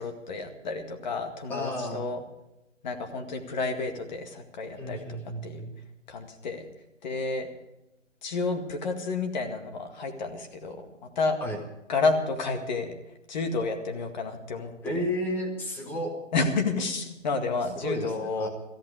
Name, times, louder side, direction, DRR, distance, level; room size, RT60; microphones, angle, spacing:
voice 1, 0.0-2.2 2.8-5.2 5.4-5.6 6.1-6.6 7.0-7.5 8.2-11.4 11.9-12.9 13.3-14.7 16.3-18.5, left 3 dB, 35° left, 5 dB, 2.1 m, -30 dB
voice 2, 1.5-2.0 4.8-5.7 11.4-11.6 14.8-16.1 17.7-18.5, equal, 5° left, 1 dB, 1.3 m, -32 dB
16.5 x 14.5 x 4.9 m, 0.93 s
hypercardioid pair, 160°, 38 cm